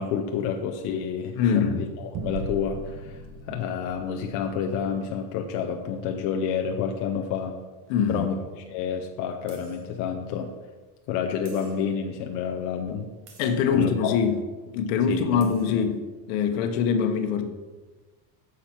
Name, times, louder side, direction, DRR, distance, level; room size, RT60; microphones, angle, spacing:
voice 1, 0.0-7.6 8.1-10.5 11.1-13.1 13.7-14.2 15.1-15.8, left 7 dB, 40° left, 0.6 m, -29 dB
voice 2, 1.4-1.8 7.9-8.3 13.4-14.3 14.7-16.0 16.3-17.5, left 6 dB, 65° left, 1.1 m, -23 dB
sound 1, 2.1-7.0, right 3 dB, 60° right, 1.3 m, -40 dB
sound 2, 8.2-8.3 9.5-9.9 11.4-12.0 13.3-13.7 15.1-15.2 15.4-15.9, right 5 dB, 45° right, 1.5 m, -53 dB
8.7 x 7.2 x 4.6 m
cardioid pair, 180°, 45 cm